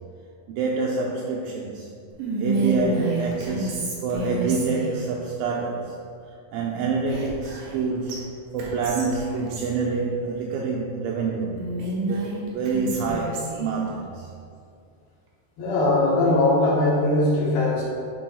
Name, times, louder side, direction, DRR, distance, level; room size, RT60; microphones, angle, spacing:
voice 1, 0.5-1.9 2.4-6.0 6.5-8.2 8.5-11.6 12.1-14.3, right 4 dB, 85° right, -2 dB, 2.1 m, -27 dB
Whispering, 2.2-5.0 7.1-7.8 8.1-8.2 8.6-9.7 11.5-13.7, right 2 dB, 70° right, 2.6 m, -29 dB
voice 2, 15.6-17.8, left 2 dB, 80° left, -6 dB, 3.4 m, -20 dB
9.4 x 6.0 x 2.3 m, 2.4 s
omnidirectional pair, 4.6 m